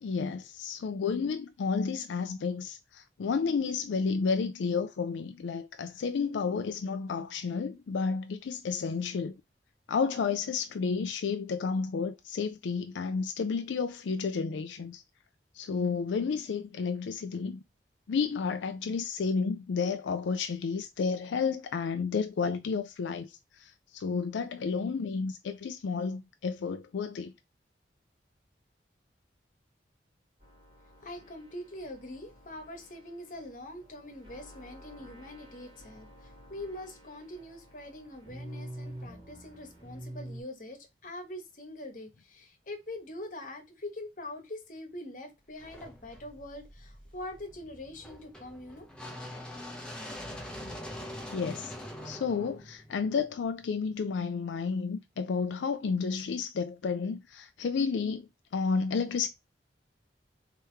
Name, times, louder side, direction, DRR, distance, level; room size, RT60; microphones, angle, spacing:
voice 1, 0.0-9.4 9.9-15.0 15.5-17.6 18.1-27.3 51.3-51.7 52.0-59.3, left 5 dB, 85° left, 0.4 m, -31 dB
sound 1, 30.4-40.4, right 1 dB, 30° right, 1.7 m, -48 dB
voice 2, 31.0-48.9, left 1 dB, 45° left, 1.1 m, -43 dB
sound 2, 45.6-53.6, left 1 dB, 5° left, 0.8 m, -44 dB
3.5 x 2.9 x 4.5 m
head